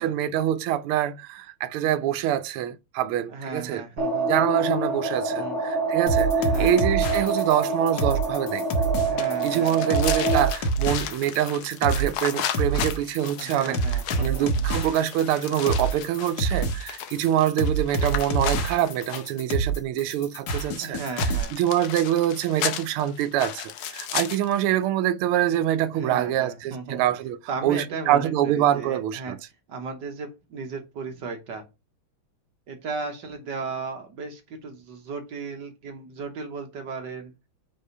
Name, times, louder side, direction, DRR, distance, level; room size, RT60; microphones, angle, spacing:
voice 1, 0.0-3.8 4.3-8.6 9.4-13.8 14.2-21.0 21.5-27.4 27.6-29.4, right 11 dB, 85° right, 1.5 m, -25 dB
voice 2, 3.3-4.4 5.3-5.6 6.4-6.8 9.0-10.0 13.4-14.7 20.8-21.6 25.9-27.0 27.5-29.4 29.7-31.6 32.7-37.3, right 4 dB, 60° right, 1.5 m, -35 dB
sound 1, 4.0-10.5, right 3 dB, ahead, 2.2 m, -26 dB
sound 2, 6.1-21.4, right 3 dB, 55° left, 1.5 m, -27 dB
sound 3, 9.2-19.4 21.2-24.6, left 10 dB, 80° left, 1.6 m, -35 dB
5.5 x 3.4 x 5.4 m
omnidirectional pair, 2.4 m